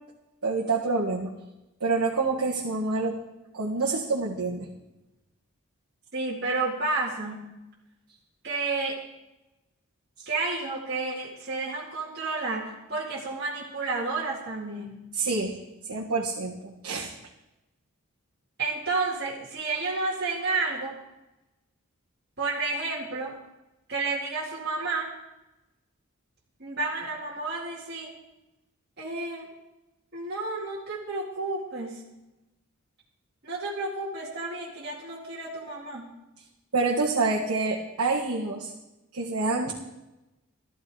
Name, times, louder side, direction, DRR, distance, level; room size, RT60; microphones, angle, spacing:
voice 1, 0.4-1.3 1.8-3.2 3.5-4.7 15.1-15.5 15.9-17.1 36.7-38.7 39.1-39.7, right 3 dB, 85° right, -3 dB, 1.6 m, -27 dB
voice 2, 6.1-7.5 8.4-9.0 10.3-15.1 18.6-21.0 22.4-23.4 23.9-25.1 26.6-28.2 29.0-29.5 30.1-32.0 33.4-36.1, right 3 dB, 45° right, -6 dB, 2.2 m, -31 dB
13.5 x 12.5 x 4.9 m, 0.96 s
head